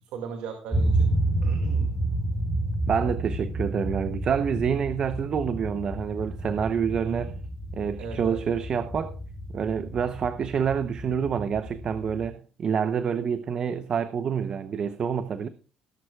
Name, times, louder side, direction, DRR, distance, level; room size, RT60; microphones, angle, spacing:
voice 1, 0.1-1.1 1.4-1.9 7.0-7.3 8.0-8.4, right 6 dB, 90° right, 2.0 m, -37 dB
sound 1, 0.7-12.3, right 2 dB, 10° right, 3.9 m, -30 dB
voice 2, 2.9-7.4 7.7-9.2 9.5-15.5, right 7 dB, 45° right, 0.7 m, -27 dB
17.5 x 11.5 x 2.3 m
cardioid pair, 115°, 2 cm